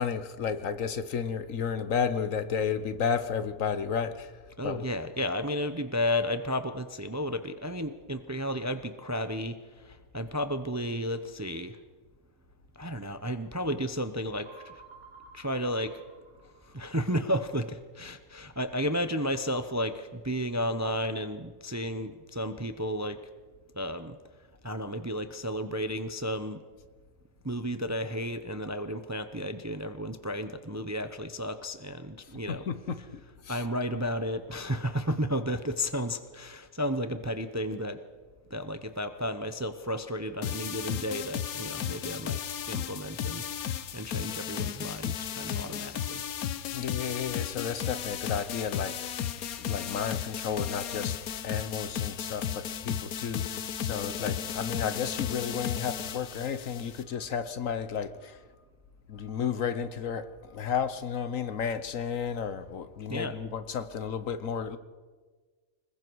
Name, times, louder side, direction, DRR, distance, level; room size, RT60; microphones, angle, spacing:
voice 1, 0.0-4.3 4.6-4.9 32.5-33.6 46.7-49.2 49.6-51.2 51.4-58.4 59.1-64.8, left 7 dB, 65° left, 12 dB, 1.4 m, -32 dB
voice 2, 4.6-11.8 12.8-14.8 15.3-16.0 16.6-23.2 23.7-24.2 24.6-26.6 27.4-32.7 33.5-38.0 38.5-42.4 42.7-43.4 43.9-46.2 63.1-63.4, equal, 15° right, 9 dB, 0.6 m, -33 dB
sound 1, 14.5-17.0, right 4 dB, 75° right, 2.1 m, -53 dB
sound 2, 40.4-57.0, left 9 dB, 85° left, 1.3 m, -34 dB
26.0 x 21.0 x 4.7 m, 1.4 s
omnidirectional pair, 1.5 m